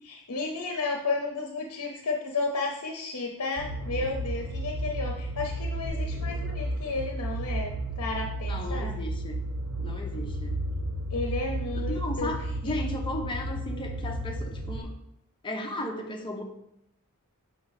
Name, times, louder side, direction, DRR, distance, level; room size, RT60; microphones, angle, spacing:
voice 1, 0.3-8.9 11.1-12.3 12.6-12.7, left 3 dB, 80° left, 2 dB, 0.7 m, -32 dB
sound 1, 3.6-14.8, right 1 dB, 80° right, 0.7 m, -33 dB
sound 2, 5.9-14.6, left 2 dB, 30° right, 1.7 m, -43 dB
voice 2, 8.5-9.4 9.8-10.6 11.7-14.9 15.4-16.4, left 1 dB, 20° left, 2 dB, 0.8 m, -35 dB
6.0 x 4.4 x 4.0 m, 0.81 s
head